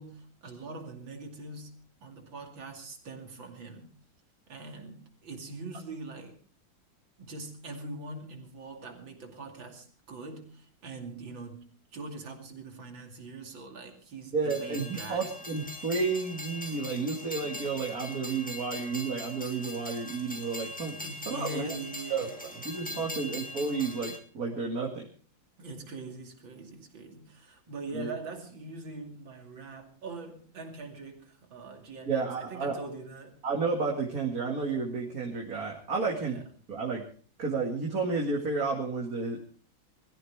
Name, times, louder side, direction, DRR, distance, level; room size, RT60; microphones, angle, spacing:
voice 1, 0.0-1.8 2.0-3.9 4.5-6.4 7.2-15.4 21.0-23.5 25.6-33.4 36.0-36.4, right 3 dB, 80° right, 3.3 m, -43 dB
voice 2, 14.3-21.0 21.3-21.7 22.1-22.3 22.6-25.1 27.9-28.1 32.1-32.8 33.4-36.4 36.7-37.1 37.4-39.4, right 4 dB, 50° right, 2.6 m, -31 dB
Train, 14.4-24.2, left 1 dB, 5° left, 1.4 m, -41 dB
22.0 x 14.5 x 3.6 m
omnidirectional pair, 2.1 m